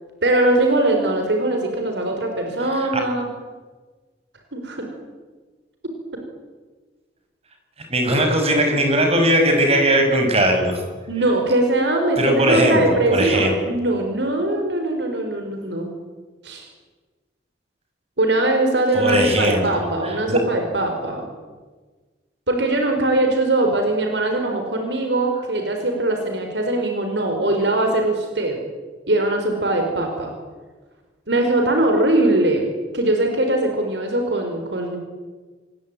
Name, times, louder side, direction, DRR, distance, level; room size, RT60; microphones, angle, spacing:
voice 1, 0.2-3.3 4.5-4.9 11.1-15.9 16.4-16.7 18.2-21.3 22.5-28.6 29.1-30.3 31.3-32.7 32.9-35.0, right 2 dB, 80° right, 3 dB, 4.8 m, -21 dB
voice 2, 7.9-10.8 12.2-13.5 18.9-20.4, right 1 dB, 35° right, 4 dB, 6.3 m, -19 dB
27.0 x 21.5 x 9.1 m, 1.4 s
head